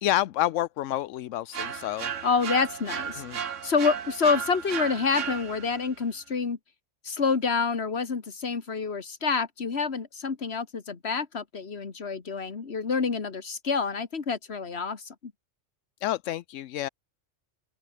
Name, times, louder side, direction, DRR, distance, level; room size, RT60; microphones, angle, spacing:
voice 1, 0.0-2.1 3.2-3.4 16.0-16.9, left 14 dB, 85° left, 1.0 m, -29 dB
sound 1, 1.5-5.9, right 8 dB, 85° right, 1.5 m, -34 dB
voice 2, 2.2-6.6 7.0-15.3, left 5 dB, 60° left, 2.0 m, -28 dB
open air
omnidirectional pair, 1.3 m